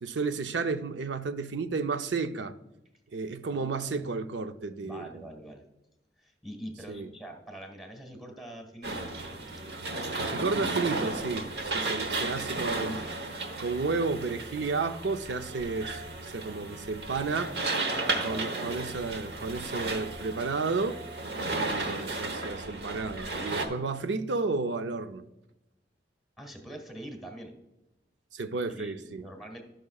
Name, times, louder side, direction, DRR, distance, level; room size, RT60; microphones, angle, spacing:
voice 1, 0.0-2.5 3.1-5.3 6.9-7.1 10.3-13.0 13.6-17.5 18.2-21.0 21.5-25.3 28.3-29.2, right 4 dB, 90° right, 0.6 m, -32 dB
voice 2, 3.5-4.1 4.8-5.6 6.2-9.1 17.9-18.7 21.6-21.7 26.4-27.5 28.7-29.6, right 1 dB, ahead, 1.4 m, -44 dB
sound 1, 8.8-23.7, right 3 dB, 65° right, 1.1 m, -34 dB
15.5 x 6.1 x 2.3 m
head